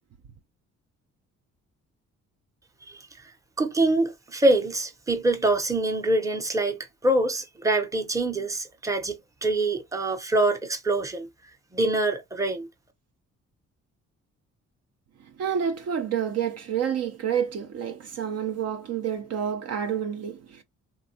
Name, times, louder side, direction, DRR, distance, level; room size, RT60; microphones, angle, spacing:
voice 1, 3.6-11.3 11.7-12.7, right 2 dB, 10° right, 0.7 m, -25 dB
voice 2, 15.2-20.6, right 8 dB, 55° right, 0.6 m, -29 dB
3.6 x 2.2 x 2.7 m
cardioid pair, 90°, 30 cm